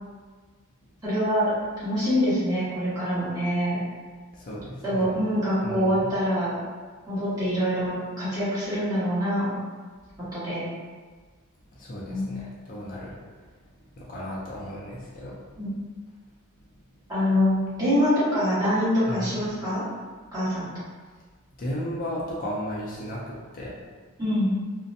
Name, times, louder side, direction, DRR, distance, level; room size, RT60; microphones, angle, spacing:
voice 1, 1.0-1.5 1.8-3.8 4.8-6.5 7.1-9.5 10.3-10.6 12.1-12.3 15.6-15.7 17.1-19.8 20.3-20.8 24.2-24.5, equal, 20° right, -13 dB, 1.2 m, -25 dB
voice 2, 4.3-5.2 5.6-6.1 11.7-13.2 14.0-15.4 19.1-19.4 21.6-23.7, equal, 40° left, -6 dB, 0.4 m, -34 dB
2.5 x 2.1 x 2.6 m, 1.5 s
head